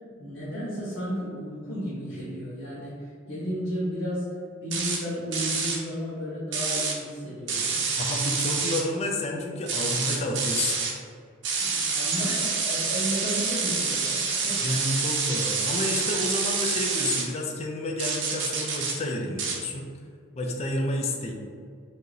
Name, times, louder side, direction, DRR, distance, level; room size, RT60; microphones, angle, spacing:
voice 1, 0.2-4.2 4.6-7.8 11.5-14.7, equal, 85° left, -10 dB, 1.2 m, -33 dB
sound 1, 4.7-5.0 5.3-5.8 6.5-7.0 7.5-8.8 9.7-10.9 11.4-17.3 18.0-19.0 19.4-19.6, right 5 dB, 60° right, 0.7 m, -27 dB
voice 2, 8.0-10.8 12.2-12.7 14.6-19.9 20.4-21.3, left 1 dB, 30° left, 1 dB, 0.4 m, -30 dB
4.4 x 2.8 x 3.2 m, 2.2 s
head